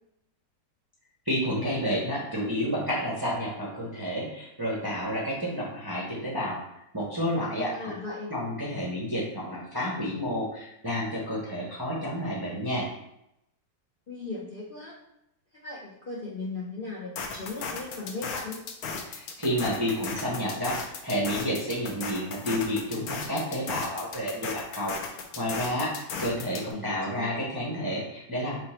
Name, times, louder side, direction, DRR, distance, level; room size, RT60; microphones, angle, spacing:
voice 1, 1.3-6.6 6.9-7.9 8.3-12.9 19.1-25.0 25.4-28.6, equal, 30° right, -5 dB, 0.4 m, -30 dB
voice 2, 7.7-8.3 14.1-14.9 15.5-18.6 26.7-27.3, left 3 dB, 90° left, -4 dB, 0.4 m, -37 dB
sound 1, 17.2-26.7, left 5 dB, 70° left, 1.0 m, -36 dB
4.4 x 2.6 x 4.3 m, 0.82 s
omnidirectional pair, 1.9 m